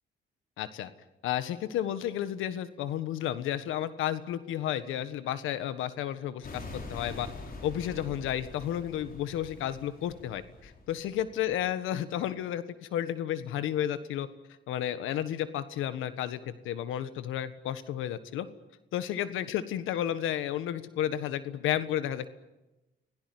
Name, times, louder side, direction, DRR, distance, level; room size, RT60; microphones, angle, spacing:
voice 1, 0.6-0.9 1.2-7.3 7.6-14.3 14.7-18.5 18.9-22.3, left 11 dB, 90° left, 12 dB, 1.5 m, -32 dB
sound 1, 6.4-11.7, left 2 dB, 45° left, 5.5 m, -45 dB
26.0 x 17.0 x 9.5 m, 1.0 s
cardioid pair, 90°, 20 cm